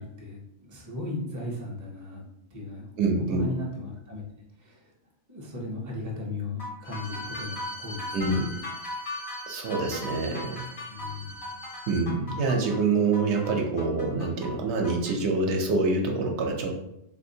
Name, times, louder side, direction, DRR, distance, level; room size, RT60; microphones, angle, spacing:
voice 1, 0.0-2.2 2.5-4.2 4.6-4.9 5.3-8.5 10.9-11.5, left 2 dB, 25° right, -2 dB, 0.4 m, -37 dB
voice 2, 3.0-3.5 8.1-8.5 9.5-10.6 11.9-16.8, right 3 dB, 75° right, 2 dB, 0.8 m, -26 dB
sound 1, 6.6-15.2, left 1 dB, 30° left, 0.4 m, -39 dB
Bowed string instrument, 6.8-12.1, left 1 dB, 75° left, 0.9 m, -42 dB
3.4 x 2.5 x 2.6 m, 0.83 s
omnidirectional pair, 1.2 m